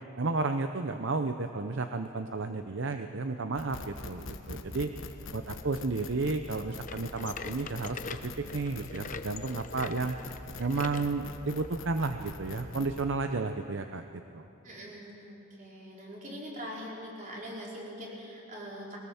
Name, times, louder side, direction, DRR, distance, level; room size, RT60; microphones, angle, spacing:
voice 1, 0.2-4.9 5.3-10.2 10.6-14.1 14.3-14.4, right 3 dB, 60° right, 7 dB, 0.7 m, -32 dB
sound 1, 3.5-13.0, left 3 dB, 60° left, 1.3 m, -44 dB
sound 2, 6.9-11.1 11.6-11.8 12.5-12.6 13.4-13.5, left 4 dB, 35° left, 0.8 m, -43 dB
voice 2, 14.6-19.0, equal, 35° right, -4 dB, 4.5 m, -42 dB
21.5 x 18.5 x 7.2 m, 2.9 s
head